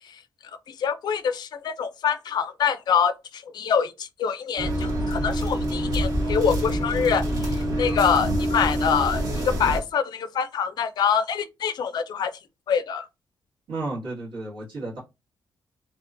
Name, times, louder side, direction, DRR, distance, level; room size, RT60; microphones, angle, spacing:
voice 1, 0.8-9.2 9.6-12.3 12.7-13.1, left 7 dB, 60° left, 0.3 m, -25 dB
sound 1, 4.6-9.8, equal, 50° right, 0.9 m, -26 dB
voice 2, 13.7-15.0, right 2 dB, 90° right, 1.5 m, -32 dB
2.7 x 2.2 x 2.4 m
cardioid pair, 125°, 8 cm